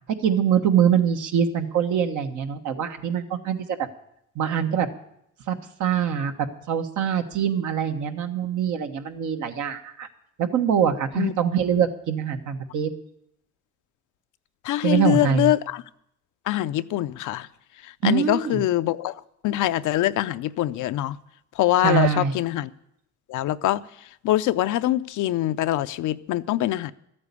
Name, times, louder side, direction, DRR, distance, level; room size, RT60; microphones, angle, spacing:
voice 1, 0.2-3.7 4.3-4.9 5.5-10.1 10.4-12.9 14.8-15.5 18.0-18.6 21.8-22.3, right 8 dB, 75° right, 1.3 m, -24 dB
voice 2, 14.6-15.8 16.5-17.5 17.8-19.2 19.4-21.2 21.5-22.7 23.3-23.8 24.2-26.9, left 14 dB, 80° left, 0.6 m, -24 dB
13.0 x 8.7 x 8.4 m
cardioid pair, 90°, 30 cm